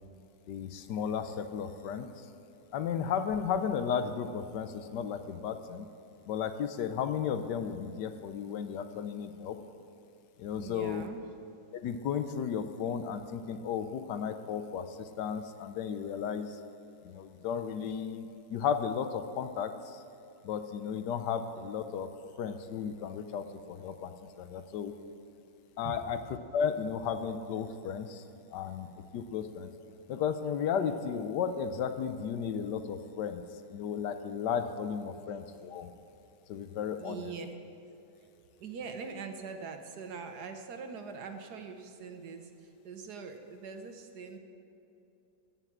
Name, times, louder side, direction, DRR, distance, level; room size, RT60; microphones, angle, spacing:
voice 1, 0.5-2.3 2.7-5.9 6.3-9.6 10.4-11.0 11.7-16.6 17.0-20.0 20.4-22.1 22.4-24.9 25.8-26.2 26.5-28.2 28.5-29.7 30.1-35.9 36.5-37.3, left 7 dB, 75° left, 9 dB, 1.2 m, -34 dB
voice 2, 10.5-11.3 25.8-26.0 37.0-37.5 38.6-44.4, right 5 dB, 65° right, 6 dB, 1.4 m, -43 dB
17.0 x 5.8 x 7.3 m, 2.8 s
omnidirectional pair, 2.0 m